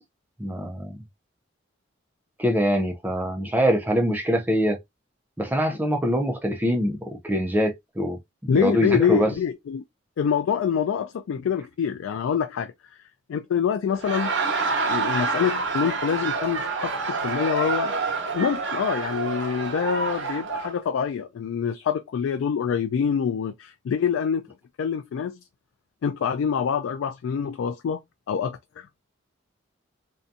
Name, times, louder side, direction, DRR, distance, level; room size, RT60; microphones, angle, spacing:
voice 1, 0.4-1.0 2.4-4.8 5.4-9.3, equal, 10° right, 0.4 m, -24 dB
voice 2, 8.5-9.8 10.2-12.7 13.3-14.3 14.8-17.9 18.3-24.5 24.8-25.4 26.0-28.0 28.3-29.0, left 7 dB, 85° left, 0.3 m, -26 dB
Laughter, 13.9-20.7, right 4 dB, 65° right, 1.0 m, -27 dB
2.6 x 2.2 x 2.4 m
head